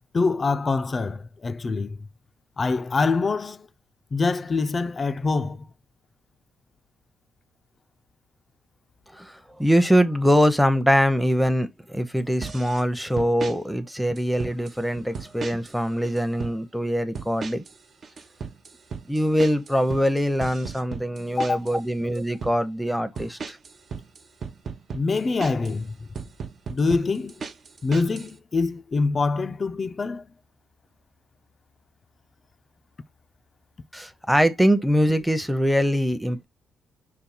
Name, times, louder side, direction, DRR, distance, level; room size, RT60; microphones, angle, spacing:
voice 1, 0.0-2.0 2.6-3.7 4.1-5.7 21.4-21.6 24.9-26.1 26.7-27.3 27.8-30.3, left 4 dB, 35° left, 0.4 m, -25 dB
voice 2, 9.6-17.6 19.1-23.6 33.9-36.5, equal, ahead, 0.7 m, -23 dB
sound 1, 12.4-12.8 13.2-13.6 14.2-14.8 15.1-15.8 16.0-16.6 17.1-17.8 18.0-21.8 22.1-22.6 23.2-25.8 26.1-28.3, right 5 dB, 50° right, 0.7 m, -36 dB
5.3 x 2.3 x 4.2 m
cardioid pair, 90°, 0 cm